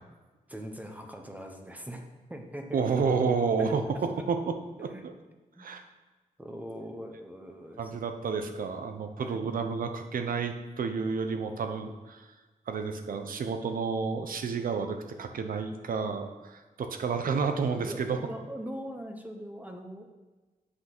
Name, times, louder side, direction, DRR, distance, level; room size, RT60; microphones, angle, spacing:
voice 1, 0.5-2.0 2.3-2.8 3.6-4.2 4.9-5.0 5.6-5.7 6.4-8.0 9.2-9.4 17.8-20.1, equal, 10° right, 3 dB, 0.9 m, -41 dB
voice 2, 2.7-3.8 4.3-4.4 4.8-5.1 5.6-5.8 7.8-12.2 12.7-18.2, right 5 dB, 75° right, 6 dB, 0.9 m, -30 dB
8.2 x 5.8 x 6.1 m, 1.2 s
wide cardioid pair, 130°, 15 cm